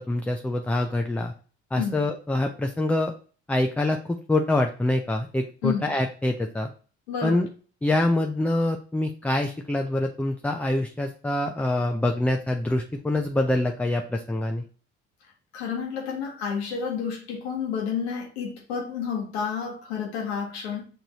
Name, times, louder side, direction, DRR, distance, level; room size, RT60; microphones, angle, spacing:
voice 1, 0.0-1.3 1.7-3.1 3.5-6.7 7.2-7.5 7.8-14.6, left 1 dB, 5° left, 0.4 m, -25 dB
voice 2, 5.6-5.9 7.1-7.5 15.5-20.8, left 6 dB, 90° left, 1.1 m, -30 dB
6.0 x 2.7 x 2.9 m
hypercardioid pair, 60°, 31 cm